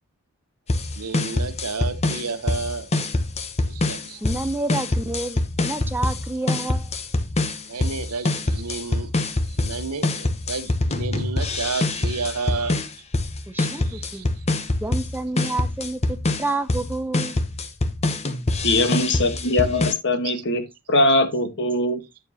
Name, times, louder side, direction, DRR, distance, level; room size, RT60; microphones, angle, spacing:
sound 1, 0.7-19.9, left 2 dB, 30° left, 0.8 m, -25 dB
voice 1, 1.0-2.9 3.7-4.2 7.7-9.1 9.4-13.0 13.7-14.4 15.4-15.5 20.2-20.4, right 4 dB, 90° right, 0.9 m, -31 dB
voice 2, 4.2-6.9 13.5-14.3 14.8-17.4, right 2 dB, 10° right, 0.6 m, -29 dB
voice 3, 18.6-20.6 20.9-22.0, left 1 dB, 55° left, 1.3 m, -21 dB
8.8 x 7.1 x 2.8 m
head